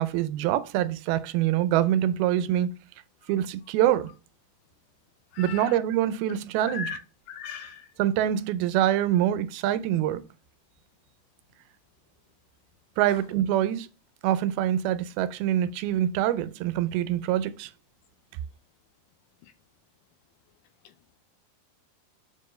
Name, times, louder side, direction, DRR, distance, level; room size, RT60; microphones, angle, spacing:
voice 1, 0.0-2.7 3.3-4.1 5.4-7.0 8.0-10.2 13.0-13.9 14.2-17.7, right 12 dB, 90° right, 2.5 m, -25 dB
voice 2, 7.3-7.7, left 6 dB, 80° left, 2.2 m, -36 dB
6.9 x 4.5 x 3.1 m
omnidirectional pair, 4.2 m